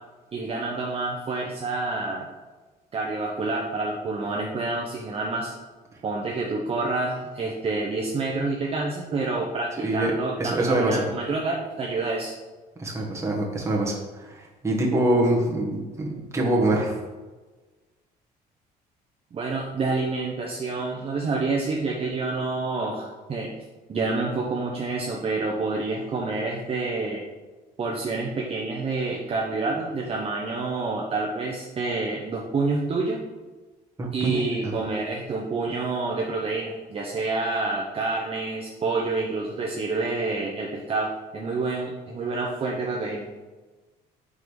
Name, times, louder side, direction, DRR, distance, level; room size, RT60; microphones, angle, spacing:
voice 1, 0.3-2.3 2.9-5.5 6.0-12.3 19.3-23.5 23.9-27.2 27.8-33.2 34.1-43.3, right 3 dB, 35° right, -1 dB, 0.7 m, -28 dB
voice 2, 9.8-10.1 10.4-11.1 12.8-17.0 34.0-34.4, right 1 dB, 15° right, -2 dB, 1.5 m, -24 dB
4.8 x 3.8 x 5.2 m, 1.3 s
cardioid pair, 110°, 17 cm